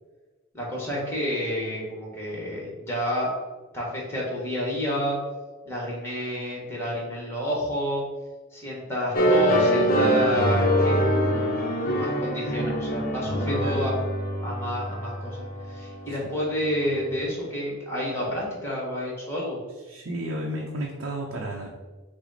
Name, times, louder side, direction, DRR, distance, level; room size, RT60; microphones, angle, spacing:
voice 1, 0.5-3.3 3.7-5.2 5.6-8.0 8.5-11.0 11.9-13.9 14.4-19.6, equal, 10° left, -4 dB, 1.2 m, -29 dB
sound 1, 9.1-17.0, equal, 45° left, 0.6 m, -24 dB
voice 2, 13.5-13.8 16.1-16.2 19.9-21.7, right 1 dB, 65° right, -1 dB, 0.6 m, -33 dB
5.8 x 2.0 x 4.0 m, 1.3 s
head